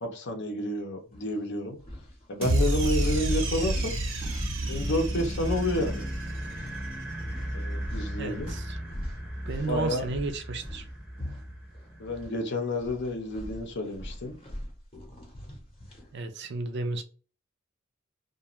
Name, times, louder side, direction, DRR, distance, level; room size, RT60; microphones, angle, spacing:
voice 1, 0.0-1.8 2.3-4.0 4.7-6.1 7.5-8.5 9.7-10.1 12.0-14.4, left 1 dB, 60° left, 0.6 m, -30 dB
sound 1, 1.1-1.3 1.8-6.3 6.5-6.7 7.3-12.4 12.7-16.1, equal, 30° left, 0.8 m, -42 dB
sound 2, 2.4-6.7, right 1 dB, 75° right, 0.9 m, -29 dB
sound 3, 4.4-12.5, equal, 5° right, 0.7 m, -36 dB
voice 2, 8.2-8.8 9.5-10.8 16.1-17.0, right 3 dB, 60° right, 0.5 m, -33 dB
2.4 x 2.3 x 2.9 m
head